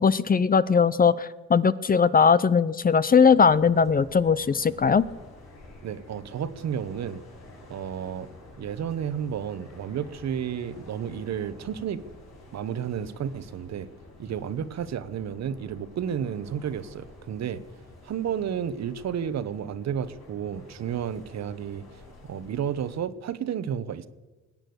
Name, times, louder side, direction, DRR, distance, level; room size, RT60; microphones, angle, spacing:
voice 1, 0.0-5.1, left 6 dB, 30° left, 17 dB, 0.6 m, -20 dB
sound 1, 3.2-23.0, left 2 dB, 60° left, 5.7 m, -49 dB
voice 2, 5.8-7.2 7.7-8.3 8.6-12.0 12.5-13.9 14.2-17.6 18.0-21.8 22.2-24.1, right 8 dB, 60° right, 14 dB, 1.1 m, -32 dB
20.5 x 8.9 x 7.9 m, 1.2 s
cardioid pair, 90°, 30 cm